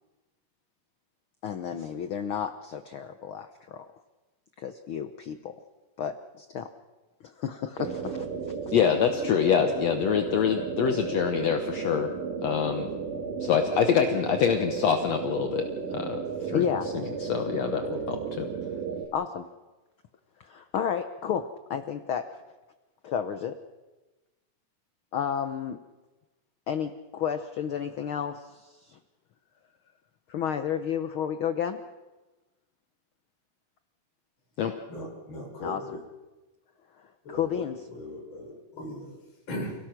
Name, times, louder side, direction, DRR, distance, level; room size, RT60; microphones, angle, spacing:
voice 1, 1.4-3.9 4.6-5.5 6.0-6.7 7.2-8.3 8.7-8.8 16.5-16.9 19.1-19.5 20.4-21.4 21.7-22.4 23.0-23.6 25.1-25.8 26.7-29.0 30.3-31.8 35.6-35.8 37.3-37.8, left 8 dB, 85° left, 9 dB, 1.1 m, -31 dB
sound 1, 7.8-19.1, right 6 dB, 85° right, 3.1 m, -33 dB
voice 2, 8.7-12.1 12.4-12.9 13.4-16.7 17.2-18.5 34.6-34.7, left 8 dB, 65° left, 6 dB, 2.1 m, -25 dB
voice 3, 34.9-36.0 37.2-39.8, equal, 40° left, -2 dB, 6.0 m, -39 dB
29.5 x 18.0 x 6.0 m, 1.2 s
omnidirectional pair, 3.6 m